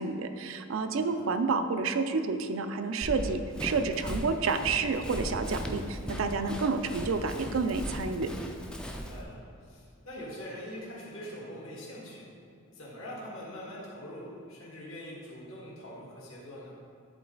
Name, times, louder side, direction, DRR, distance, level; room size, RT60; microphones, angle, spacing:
voice 1, 0.0-8.3, right 4 dB, 70° right, 8 dB, 0.4 m, -29 dB
voice 2, 0.8-1.2 8.9-12.3 12.7-16.7, equal, 70° left, -5 dB, 1.8 m, -43 dB
Run, 3.0-9.2, equal, 5° left, 0.3 m, -38 dB
10.5 x 3.9 x 3.9 m, 2.4 s
head